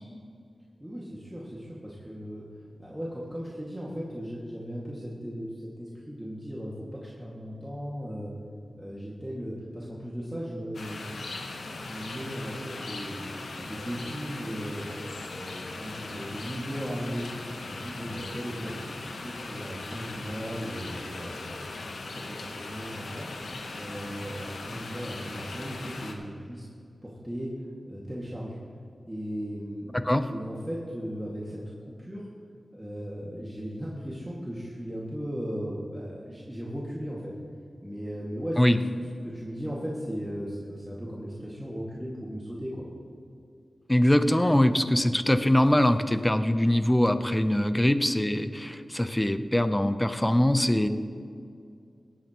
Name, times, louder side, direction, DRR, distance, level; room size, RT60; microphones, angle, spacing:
voice 1, 0.8-2.4 2.8-8.3 8.8-11.2 11.7-14.9 15.3-17.3 17.7-21.8 22.1-23.3 23.7-26.7 27.0-27.6 27.9-28.6 29.0-31.6 32.0-32.3 32.7-37.3 37.8-38.8 39.2-42.8, equal, 10° right, -6 dB, 2.2 m, -37 dB
sound 1, 10.7-26.1, left 3 dB, 85° left, 1.1 m, -39 dB
voice 2, 43.9-50.9, left 1 dB, 15° left, 10 dB, 0.7 m, -23 dB
18.0 x 8.7 x 3.1 m, 2.4 s
cardioid pair, 40°, 0 cm